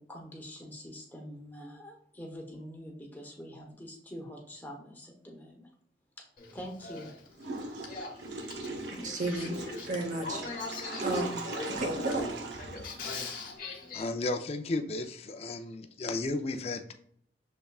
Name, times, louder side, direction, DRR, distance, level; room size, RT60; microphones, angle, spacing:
voice 1, 0.0-5.7 6.2-6.3 6.5-7.1, equal, 10° left, 0.9 m, -45 dB
Male speech man speaking / Female speech woman speaking / Conversation, 6.4-14.0, left 4 dB, 50° left, 1.0 m, -41 dB
Water / Toilet flush, 7.4-13.6, right 3 dB, 75° right, 0.7 m, -39 dB
voice 2, 8.9-9.6 9.9-12.3, right 1 dB, 45° right, 0.9 m, -34 dB
voice 3, 13.9-16.9, left 2 dB, 35° left, 0.4 m, -34 dB
6.5 x 3.5 x 2.3 m
head